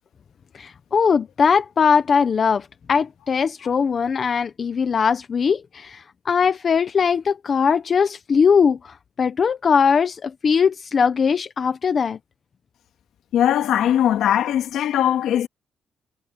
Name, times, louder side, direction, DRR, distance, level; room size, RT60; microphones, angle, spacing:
voice 1, 0.5-8.8 9.2-12.2, left 6 dB, 35° left, 0.7 m, -20 dB
voice 2, 13.3-15.5, left 10 dB, 70° left, 2.2 m, -20 dB
cardioid pair, 160°, 0 cm